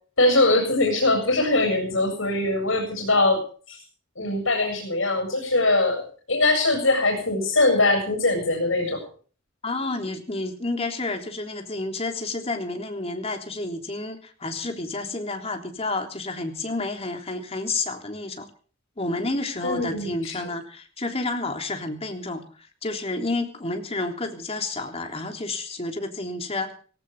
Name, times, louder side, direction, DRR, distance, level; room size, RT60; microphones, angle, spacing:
voice 1, 0.2-3.4 3.7-3.8 4.2-6.0 6.3-9.0 19.6-20.5, left 2 dB, 80° left, 3 dB, 7.5 m, -22 dB
voice 2, 9.6-18.5 19.0-26.7, left 2 dB, 30° left, 4 dB, 3.5 m, -30 dB
19.0 x 18.0 x 3.8 m, 0.42 s
head